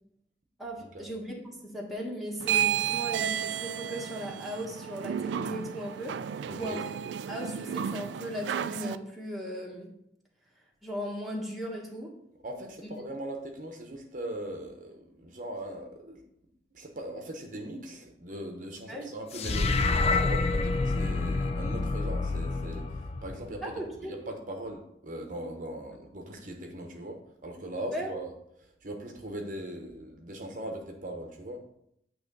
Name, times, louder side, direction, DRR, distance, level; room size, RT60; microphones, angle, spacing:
voice 1, 0.6-6.9 7.3-9.9 10.8-12.1 18.9-19.1 23.6-24.1 27.9-28.1, equal, ahead, -3 dB, 1.3 m, -37 dB
sound 1, 2.4-9.0, right 9 dB, 90° right, 0.3 m, -32 dB
voice 2, 6.5-6.8 12.4-16.2 16.7-28.3 28.6-31.6, right 1 dB, 45° right, 3 dB, 0.8 m, -40 dB
sound 2, 19.3-23.7, left 3 dB, 35° left, 0.4 m, -28 dB
8.9 x 3.1 x 5.2 m, 0.75 s
head